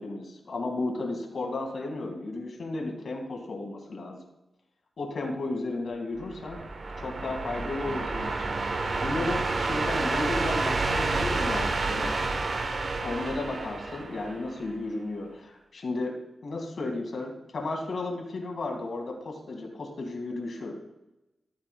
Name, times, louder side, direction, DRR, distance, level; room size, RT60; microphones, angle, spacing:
voice 1, 0.0-4.2 5.0-6.6 7.0-12.2 13.0-16.2 16.4-20.8, left 2 dB, 70° left, 2 dB, 2.0 m, -34 dB
sound 1, 6.2-14.7, right 3 dB, 60° right, 1.0 m, -29 dB
14.5 x 8.8 x 2.3 m, 0.93 s
cardioid pair, 55°, 0 cm